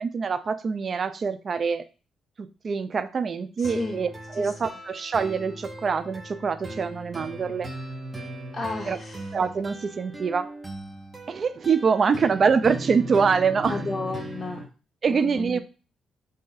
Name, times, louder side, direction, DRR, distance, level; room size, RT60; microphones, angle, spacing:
voice 1, 0.0-1.8 2.4-7.7 8.9-9.0 9.3-10.5 11.3-13.8 15.0-15.6, right 5 dB, 50° right, 11 dB, 0.3 m, -25 dB
voice 2, 3.6-4.0 4.4-4.7 8.5-9.3 13.7-14.7 15.1-15.6, left 3 dB, 30° left, 0 dB, 0.5 m, -33 dB
sound 1, 3.6-14.6, right 2 dB, 25° right, 0.7 m, -38 dB
2.6 x 2.5 x 3.8 m, 0.34 s
supercardioid pair, 60°, 0 cm